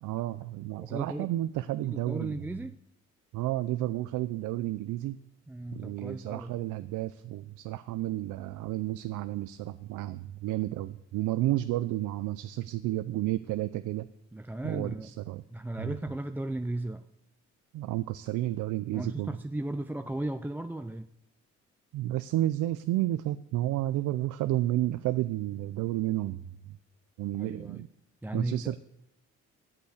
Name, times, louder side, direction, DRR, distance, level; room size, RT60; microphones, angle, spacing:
voice 1, 0.0-2.4 3.3-5.2 5.7-14.1 14.6-15.4 15.8-16.0 17.7-19.3 21.9-26.8 27.2-27.9 28.3-28.8, right 15 dB, 85° right, 12 dB, 0.5 m, -31 dB
voice 2, 0.8-1.3 1.8-2.8 5.5-6.5 14.3-15.1 15.5-17.0 18.9-21.1 27.4-27.9 28.2-28.8, right 1 dB, 5° right, 8 dB, 0.4 m, -36 dB
9.1 x 8.5 x 8.1 m, 0.83 s
cardioid pair, 90°, 30 cm